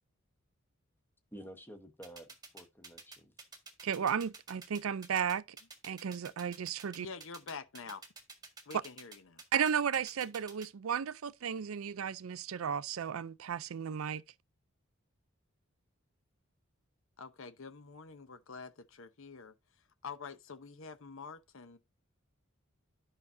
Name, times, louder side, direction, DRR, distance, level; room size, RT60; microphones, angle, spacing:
voice 1, 1.3-3.3, equal, 10° left, 1.1 m, -51 dB
sound 1, 2.0-10.7, right 4 dB, 20° right, 1.7 m, -50 dB
voice 2, 3.8-5.4 5.8-7.1 9.5-14.2, right 8 dB, 75° right, 0.4 m, -34 dB
voice 3, 7.0-8.0 8.7-9.4 17.2-21.8, left 5 dB, 70° left, 0.8 m, -47 dB
11.0 x 5.7 x 2.6 m
head